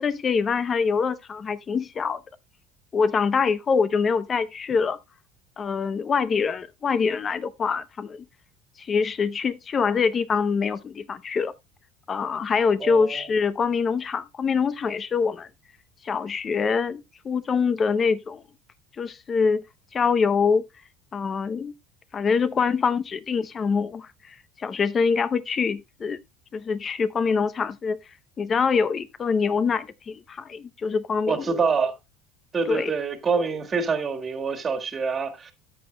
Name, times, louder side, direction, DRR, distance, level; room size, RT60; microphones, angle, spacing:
voice 1, 0.0-2.2 2.9-5.0 5.6-8.2 8.8-11.5 12.1-15.5 16.0-18.4 19.0-19.6 19.9-20.6 21.1-21.8 22.1-26.2 26.5-28.0 28.4-31.5 32.7-32.9, left 5 dB, 30° left, 0.7 m, -24 dB
voice 2, 12.8-13.2 31.3-31.9 32.5-35.5, right 5 dB, 25° right, 1.8 m, -26 dB
13.0 x 7.8 x 2.2 m
cardioid pair, 130°, 0 cm